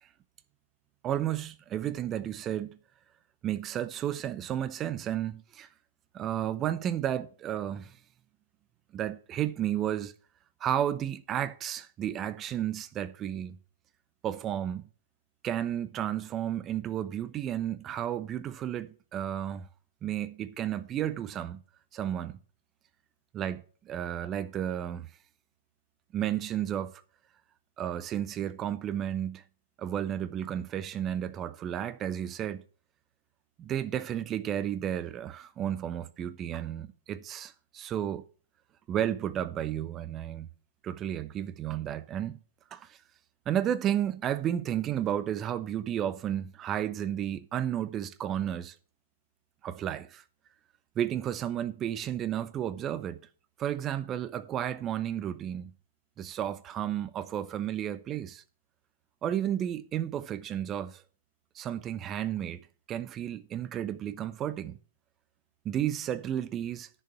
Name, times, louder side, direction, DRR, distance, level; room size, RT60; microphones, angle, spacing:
voice 1, 1.0-2.8 3.4-5.7 6.1-8.0 8.9-10.1 10.6-13.6 14.2-14.8 15.4-19.7 20.0-21.6 21.9-22.4 23.3-25.1 26.1-27.0 27.8-29.4 29.8-32.6 33.6-38.2 38.9-40.5 40.8-42.4 42.7-43.0 43.5-48.7 49.6-50.2 51.0-53.2 53.6-55.7 56.2-58.4 59.2-61.0 61.5-62.6 62.9-64.8 65.6-66.9, right 10 dB, 25° right, 0.8 m, -32 dB
10.5 x 6.8 x 6.0 m
figure-of-eight pair, 110°, 0 cm